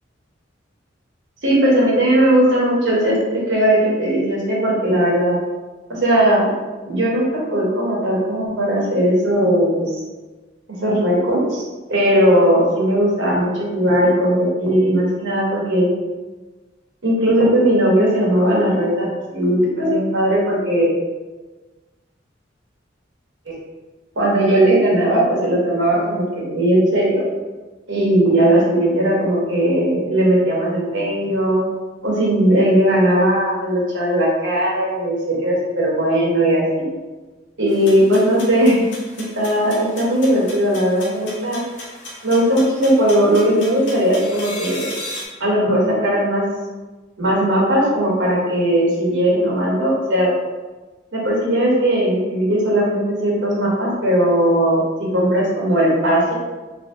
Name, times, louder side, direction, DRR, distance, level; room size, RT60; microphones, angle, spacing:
voice 1, 1.4-5.4 5.9-6.5 6.9-9.8 10.7-11.6 11.9-15.9 17.0-20.9 24.2-27.2 27.9-31.6 32.0-35.2 35.4-36.8 37.6-38.8 39.3-41.6 42.2-44.9 45.4-46.4 47.2-50.3 51.1-54.8 55.1-56.3, right 1 dB, 70° right, -4 dB, 1.1 m, -18 dB
sound 1, 37.7-45.2, left 1 dB, 70° left, 0.9 m, -36 dB
3.7 x 2.8 x 2.7 m, 1.2 s
head